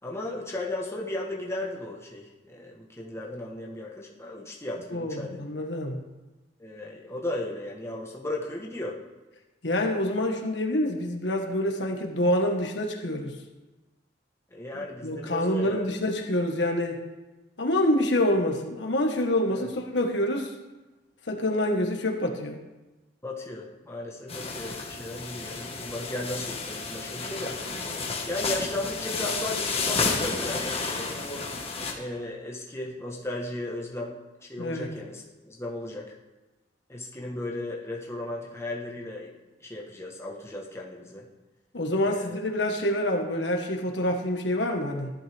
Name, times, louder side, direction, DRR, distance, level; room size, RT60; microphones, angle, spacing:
voice 1, 0.0-5.5 6.6-9.0 14.5-15.8 19.5-19.6 23.2-27.6 28.3-31.4 31.9-36.1 36.9-39.3 39.6-41.2 42.0-42.4, left 1 dB, 15° left, -2 dB, 1.4 m, -35 dB
voice 2, 4.9-6.0 9.6-13.3 15.0-17.0 17.6-20.5 21.3-22.6 34.6-34.9 41.7-45.1, left 1 dB, 70° left, 2 dB, 1.6 m, -26 dB
sound 1, 24.3-31.9, left 4 dB, 35° left, 1.7 m, -31 dB
15.5 x 11.5 x 3.6 m, 1.1 s
head